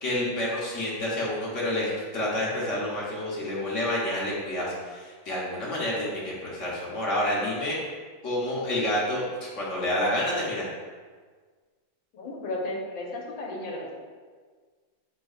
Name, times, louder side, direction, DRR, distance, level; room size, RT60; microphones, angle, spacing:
voice 1, 0.0-7.8 8.2-10.6, left 1 dB, 40° left, -5 dB, 1.3 m, -29 dB
voice 2, 12.1-13.9, left 2 dB, 70° left, -2 dB, 1.8 m, -34 dB
7.5 x 5.8 x 2.5 m, 1.5 s
omnidirectional pair, 2.2 m